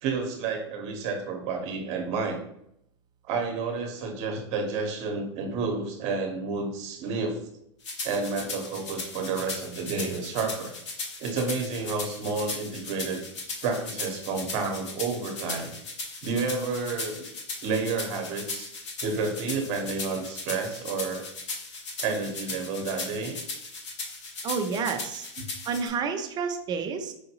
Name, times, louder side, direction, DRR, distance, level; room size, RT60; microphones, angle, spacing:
voice 1, 0.0-2.4 3.3-7.4 8.0-10.7 11.2-13.2 13.6-15.7 16.2-17.2 17.6-18.7 19.0-21.3 22.0-23.4 25.4-25.5, right 4 dB, 45° right, 3 dB, 1.0 m, -30 dB
sound 1, 7.8-25.9, left 3 dB, 80° left, 1.1 m, -37 dB
voice 2, 24.4-25.2 25.7-27.1, right 5 dB, 30° right, 6 dB, 0.5 m, -29 dB
4.8 x 2.5 x 2.9 m, 0.74 s
hypercardioid pair, 120°, 15 cm